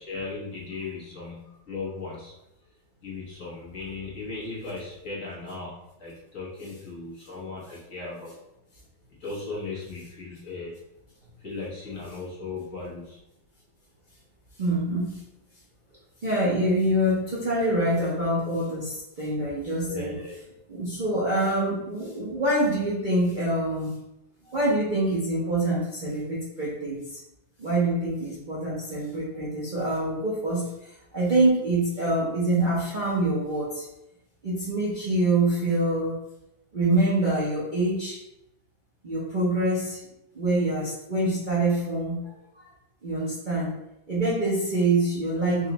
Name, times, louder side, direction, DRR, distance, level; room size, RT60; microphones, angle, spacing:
voice 1, 0.0-2.3 3.0-8.4 9.2-10.8 11.4-13.2 19.9-20.4, left 3 dB, 50° left, -6 dB, 1.4 m, -37 dB
voice 2, 14.6-15.2 16.2-20.2 20.7-23.9 24.5-27.2 27.6-33.8 34.4-36.1 36.7-38.2 39.0-40.0 40.3-42.2 42.6-42.7 43.0-43.8 44.1-45.7, right 1 dB, 40° right, -8 dB, 0.7 m, -25 dB
3.9 x 2.4 x 4.0 m, 0.86 s
omnidirectional pair, 2.0 m